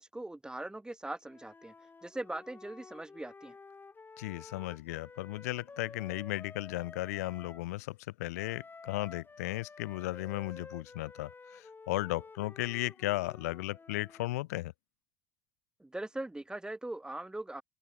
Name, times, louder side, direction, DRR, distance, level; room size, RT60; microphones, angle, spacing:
voice 1, 0.0-1.7 2.0-3.5 15.8-17.6, right 2 dB, 10° right, 1.7 m, -40 dB
Wind instrument woodwind instrument, 1.2-7.6 8.4-14.4, left 4 dB, 25° left, 7.9 m, -52 dB
voice 2, 4.2-14.7, left 19 dB, 90° left, 0.5 m, -35 dB
open air
supercardioid pair, 75°, 8 cm